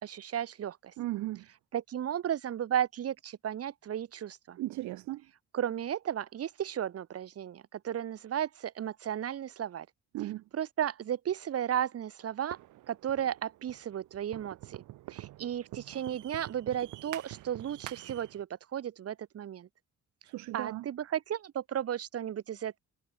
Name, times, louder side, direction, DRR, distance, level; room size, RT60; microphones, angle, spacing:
voice 1, 0.0-0.9 1.7-4.6 5.5-9.9 10.5-12.6 12.9-14.8 15.1-19.7 20.5-22.8, right 10 dB, 50° right, 1.1 m, -34 dB
voice 2, 1.0-1.5 4.6-5.2 10.1-10.4 20.2-20.9, right 17 dB, 70° right, 0.5 m, -36 dB
sound 1, 12.5-18.4, right 16 dB, 90° right, 2.1 m, -47 dB
cardioid pair, 90°, 30 cm